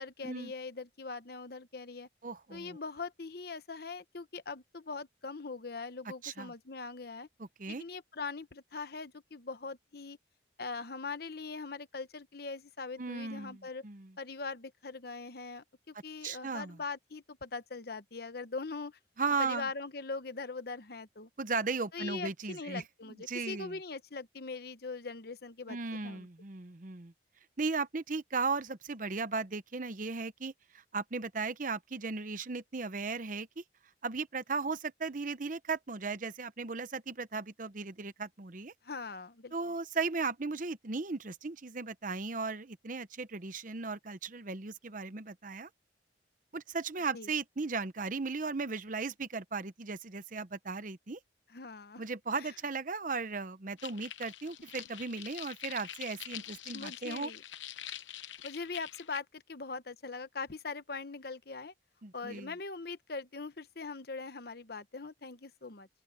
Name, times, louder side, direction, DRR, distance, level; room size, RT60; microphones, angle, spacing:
voice 1, 0.0-2.1 2.5-7.3 7.7-10.2 10.6-13.8 14.2-19.0 19.4-21.3 21.9-26.3 38.8-39.5 47.1-47.3 51.5-52.0 52.4-52.5 56.7-57.4 58.4-61.7 62.1-65.9, left 4 dB, 55° left, 1.0 m, -41 dB
voice 2, 2.2-2.8 6.2-6.5 7.6-7.8 13.0-14.1 16.2-16.8 19.2-19.7 21.4-22.8 23.3-23.7 25.7-27.1 27.6-33.6 34.0-38.7 39.5-45.7 46.5-51.2 52.0-57.3 62.0-62.5, right 4 dB, 45° right, 0.8 m, -36 dB
sound 1, 53.8-59.2, left 11 dB, 80° left, 0.9 m, -45 dB
open air
head